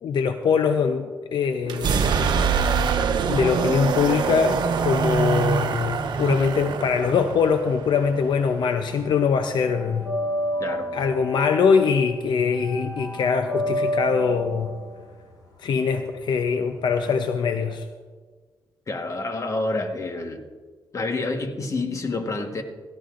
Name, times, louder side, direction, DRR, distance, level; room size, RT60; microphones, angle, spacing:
voice 1, 0.0-2.1 3.3-10.1 10.9-14.7 15.6-17.9, left 6 dB, 75° left, 7 dB, 0.6 m, -22 dB
sound 1, 1.6-9.4, right 6 dB, 75° right, 0.9 m, -25 dB
sound 2, 7.9-8.8 9.1-17.0, equal, 60° left, 3.2 m, -31 dB
voice 2, 18.9-20.4 20.9-22.6, left 2 dB, 45° left, 5 dB, 1.3 m, -28 dB
17.0 x 14.5 x 2.5 m, 1.5 s
cardioid pair, 90°, 8 cm